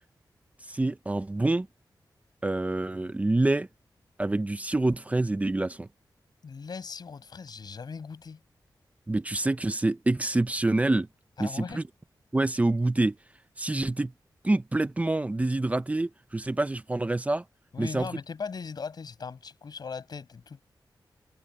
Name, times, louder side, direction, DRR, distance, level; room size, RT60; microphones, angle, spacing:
voice 1, 0.7-1.7 2.4-3.7 4.2-5.9 9.1-11.1 11.4-11.8 12.3-13.2 13.6-14.1 14.4-17.4 17.8-18.1, right 2 dB, 20° right, 0.7 m, -26 dB
voice 2, 6.4-8.4 11.4-11.8 17.7-20.6, left 5 dB, 65° left, 5.5 m, -39 dB
wide cardioid pair, 110°, 8 cm